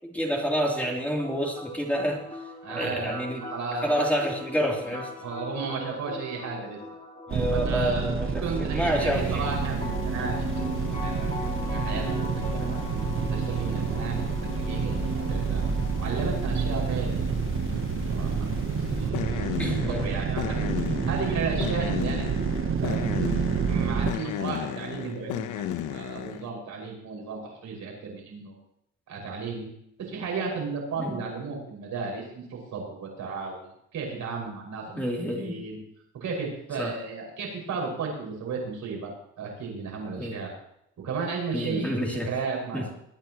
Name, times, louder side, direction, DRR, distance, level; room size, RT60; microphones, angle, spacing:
voice 1, 0.0-2.2 2.7-3.4 3.8-5.1 7.3-9.5 11.9-12.2 19.6-20.2 31.0-31.2 35.0-35.6 36.8-36.9 40.2-40.3 41.5-42.3 42.7-42.9, equal, 5° left, -2 dB, 3.1 m, -28 dB
sound 1, 0.8-16.8, left 2 dB, 25° left, 4.0 m, -40 dB
voice 2, 2.6-4.1 4.8-4.9 5.2-6.8 7.5-8.1 8.4-10.5 11.0-11.3 11.6-12.8 13.2-15.6 16.0-17.3 17.7-17.8 18.1-19.5 19.9-20.7 21.1-22.2 22.8-23.0 23.7-28.5 29.1-29.7 30.0-35.8 36.2-40.5 41.0-42.8, right 4 dB, 70° right, -1 dB, 5.8 m, -34 dB
sound 2, 7.3-24.1, right 6 dB, 45° right, 1.0 m, -28 dB
sound 3, 9.1-26.5, left 10 dB, 90° left, 0.9 m, -36 dB
22.0 x 9.6 x 3.0 m, 0.75 s
cardioid pair, 90°, 30 cm